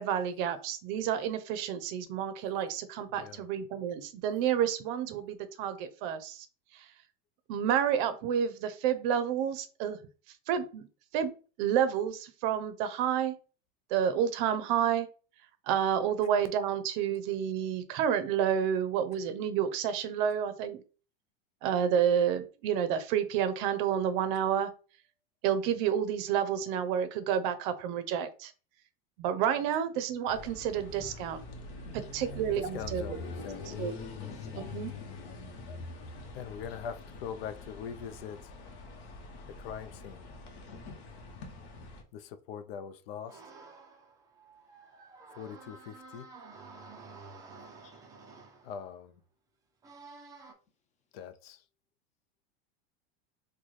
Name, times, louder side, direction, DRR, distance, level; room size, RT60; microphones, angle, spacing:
voice 1, 0.0-6.5 6.7-6.9 7.5-10.0 10.5-10.9 11.1-11.3 11.6-13.3 13.9-15.1 15.7-20.8 21.6-24.7 25.4-28.5 29.2-31.4 32.1-33.2 33.8-33.9 34.7-34.9, right 9 dB, 55° right, 0.6 m, -29 dB
voice 2, 3.1-3.5 32.6-33.8 36.3-38.5 39.5-40.3 42.1-43.4 45.3-46.3 48.6-49.2 51.1-51.6, left 8 dB, 75° left, 0.5 m, -42 dB
sound 1, 30.3-42.0, left 3 dB, 60° left, 1.0 m, -44 dB
voice 3, 31.8-32.4 34.2-34.7 47.8-48.0, left 5 dB, 25° left, 0.6 m, -52 dB
sound 2, 43.3-48.9 49.8-50.5, right 3 dB, 10° right, 0.4 m, -51 dB
4.0 x 2.2 x 3.1 m
supercardioid pair, 140°, 30 cm